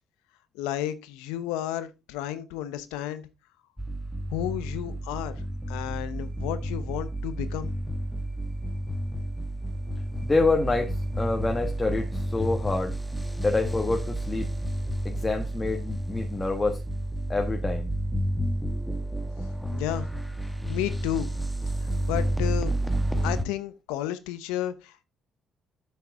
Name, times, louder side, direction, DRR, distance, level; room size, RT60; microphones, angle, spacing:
voice 1, 0.5-3.3 4.3-5.4 5.7-7.7 19.7-20.1 20.7-21.3 22.0-22.7 23.2-24.9, left 12 dB, 90° left, 0.8 m, -32 dB
sound 1, 3.8-23.4, right 1 dB, ahead, 1.2 m, -30 dB
voice 2, 10.2-12.9 13.4-14.5 15.0-16.8 17.3-17.9, left 3 dB, 25° left, 1.4 m, -27 dB
9.2 x 5.8 x 3.5 m
supercardioid pair, 60°, 0 cm